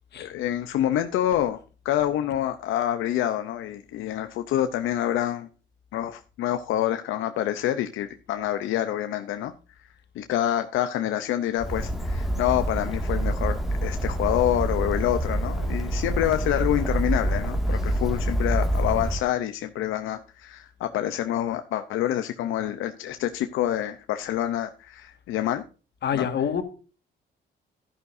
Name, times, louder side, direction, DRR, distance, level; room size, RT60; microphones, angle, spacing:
voice 1, 0.2-1.6 1.8-5.5 5.9-9.5 10.2-25.6 26.1-26.3, left 12 dB, 90° left, 0.7 m, -27 dB
Bird, 11.6-19.2, right 1 dB, ahead, 2.0 m, -26 dB
voice 2, 26.0-26.6, left 8 dB, 60° left, 1.8 m, -26 dB
11.0 x 11.0 x 2.6 m
cardioid pair, 90°, 20 cm